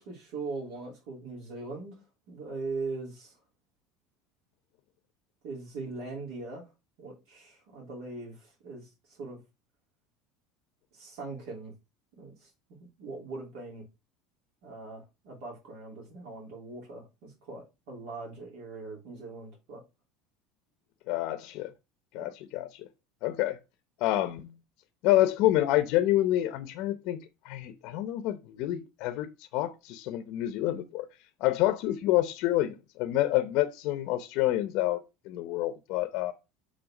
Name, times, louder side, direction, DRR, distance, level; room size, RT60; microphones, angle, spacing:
voice 1, 0.0-2.0 2.3-3.3 5.4-6.7 7.0-9.4 10.9-11.7 12.2-13.9 14.6-19.8 22.2-22.3, right 3 dB, 65° right, 3.1 m, -41 dB
voice 2, 21.1-21.7 22.1-22.9 23.2-23.6 24.0-24.5 25.0-27.2 27.4-29.3 29.5-31.1 31.4-35.0 35.3-36.3, left 14 dB, 55° left, 0.8 m, -28 dB
6.4 x 3.9 x 6.0 m
cardioid pair, 165°, 0 cm